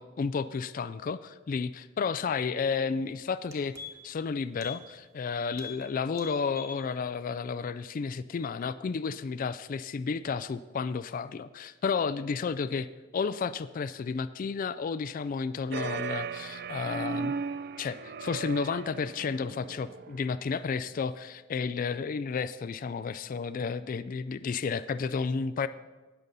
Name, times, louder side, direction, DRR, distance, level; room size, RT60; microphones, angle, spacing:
voice 1, 0.0-3.7 4.0-12.9 13.1-17.4 17.8-25.7, left 5 dB, 40° left, 14 dB, 0.3 m, -32 dB
sound 1, 2.9-3.0 3.3-4.2 4.6-4.8 5.1-5.2 5.5-5.8 6.1-6.8 7.2-7.3, left 5 dB, 15° right, 1.4 m, -44 dB
sound 2, 15.7-20.4, right 5 dB, 50° right, 0.4 m, -37 dB
19.0 x 6.8 x 4.0 m, 1.2 s
head